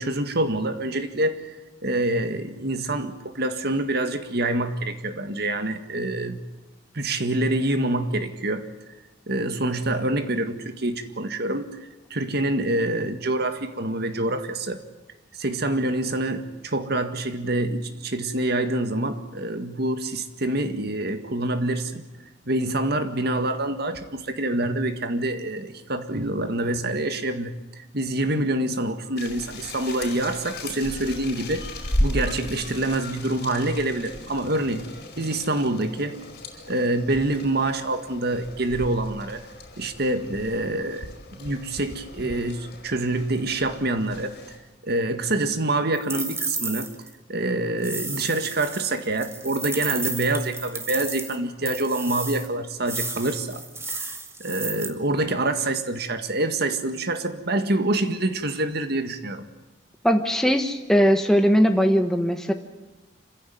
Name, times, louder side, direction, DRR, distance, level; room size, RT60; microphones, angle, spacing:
voice 1, 0.0-1.6 1.8-6.4 6.9-8.7 9.3-14.8 15.4-22.0 22.5-27.5 27.9-31.6 32.0-34.9 35.2-36.2 36.7-39.5 39.8-41.1 41.3-44.4 44.8-46.9 47.3-54.1 54.4-59.5, right 2 dB, 60° right, 2.0 m, -26 dB
sound 1, 29.2-44.6, left 1 dB, 60° left, 5.1 m, -35 dB
sound 2, 45.9-47.1 47.8-51.4 51.6-52.5 52.8-54.9, right 3 dB, 15° right, 2.2 m, -33 dB
voice 2, 60.0-62.5, equal, 5° left, 1.3 m, -19 dB
27.0 x 16.0 x 9.4 m
head